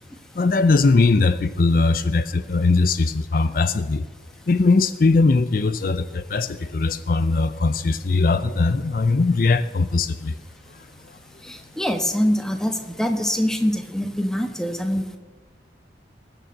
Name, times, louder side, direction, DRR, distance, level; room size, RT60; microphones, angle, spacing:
voice 1, 0.4-4.0 4.5-10.4, left 3 dB, 50° left, 13 dB, 0.5 m, -20 dB
voice 2, 11.4-15.2, equal, 5° left, 6 dB, 1.1 m, -24 dB
19.5 x 7.0 x 7.6 m, 1.3 s
head